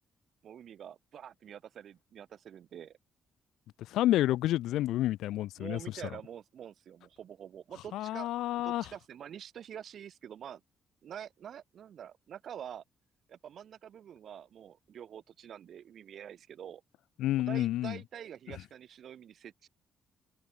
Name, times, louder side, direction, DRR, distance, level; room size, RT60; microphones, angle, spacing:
voice 1, 0.4-3.0 5.6-8.3 8.6-10.6 11.0-12.8 13.3-16.8 17.4-19.7, right 9 dB, 65° right, 4.9 m, -46 dB
voice 2, 3.9-5.8 7.9-8.8 17.2-18.0, left 14 dB, 85° left, 0.7 m, -29 dB
open air
cardioid pair, 90°, 0 cm